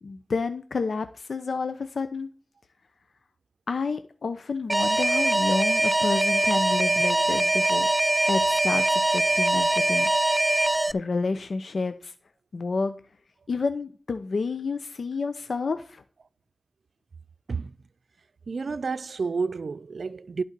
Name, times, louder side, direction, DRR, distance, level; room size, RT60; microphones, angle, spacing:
voice 1, 0.0-2.3 3.7-7.9 8.3-10.1 10.9-12.1 12.5-13.0 13.5-16.0, left 4 dB, 85° left, 0.8 m, -29 dB
Alarm, 4.7-10.9, right 2 dB, 30° right, 0.3 m, -22 dB
voice 2, 18.5-20.4, right 4 dB, 85° right, 0.5 m, -30 dB
11.5 x 4.4 x 6.8 m
wide cardioid pair, 60°, 0 cm